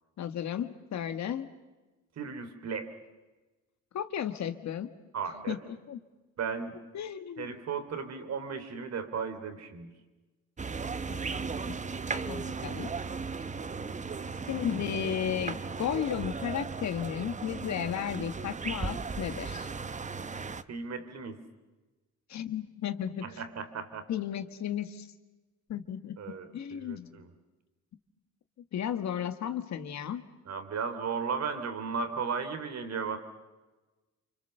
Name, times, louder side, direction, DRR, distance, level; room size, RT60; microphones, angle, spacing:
voice 1, 0.2-1.5 3.9-4.9 5.5-6.0 6.9-7.6 11.1-11.8 12.1-12.9 14.5-19.7 22.3-23.4 24.1-25.1 25.7-26.2 26.5-27.2 28.7-30.3, left 9 dB, 65° left, 9 dB, 1.8 m, -34 dB
voice 2, 2.2-2.9 5.1-5.6 6.4-6.8 7.4-9.9 20.7-21.4 23.2-24.1 26.2-27.3 30.5-33.2, right 5 dB, 60° right, 9 dB, 3.2 m, -35 dB
sound 1, 10.6-20.6, right 4 dB, 25° right, 0.9 m, -36 dB
28.5 x 25.0 x 6.9 m, 1.2 s
cardioid pair, 90°, 30 cm